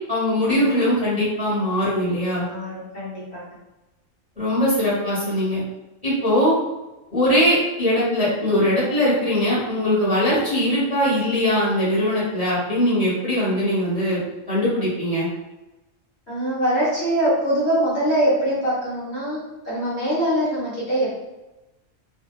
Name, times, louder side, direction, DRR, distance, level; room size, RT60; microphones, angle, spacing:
voice 1, 0.1-2.4 4.4-5.6 6.0-6.5 7.1-14.2 14.5-15.3, left 1 dB, 5° right, -10 dB, 1.1 m, -21 dB
voice 2, 2.5-3.5 9.7-9.9 16.3-19.4 19.6-21.1, right 1 dB, 60° left, -7 dB, 1.0 m, -23 dB
2.7 x 2.2 x 2.3 m, 1.0 s
omnidirectional pair, 1.3 m